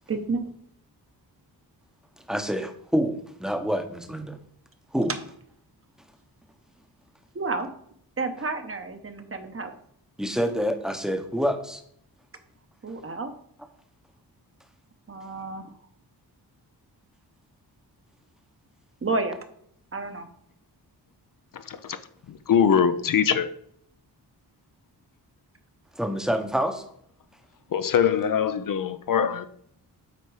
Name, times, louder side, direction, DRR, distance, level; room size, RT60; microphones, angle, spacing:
voice 1, 0.1-0.5 7.3-7.7 8.2-9.7 12.8-13.3 15.1-15.7 19.0-19.4 19.9-20.3, right 3 dB, 35° right, 0.9 m, -30 dB
voice 2, 2.3-4.4 4.9-5.1 10.2-11.8 26.0-26.9, equal, ahead, 0.8 m, -27 dB
voice 3, 21.5-22.0 22.5-23.5 27.7-29.4, left 7 dB, 55° left, 0.5 m, -22 dB
8.3 x 4.1 x 4.8 m
wide cardioid pair, 110°, 40 cm